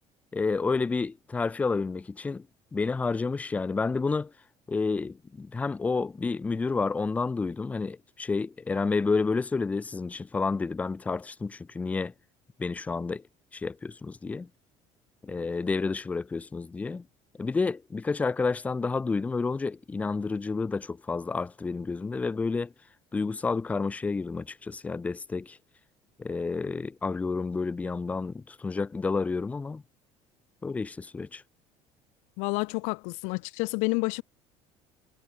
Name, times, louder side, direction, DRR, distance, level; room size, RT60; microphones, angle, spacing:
voice 1, 0.3-2.5 2.7-4.3 4.7-12.1 12.6-13.2 13.5-14.5 15.2-17.0 17.4-22.7 23.1-25.6 26.2-29.8 30.6-31.4, left 4 dB, 10° left, 0.5 m, -30 dB
voice 2, 32.4-34.2, left 33 dB, 85° left, 0.4 m, -29 dB
cardioid pair, 160°, 12 cm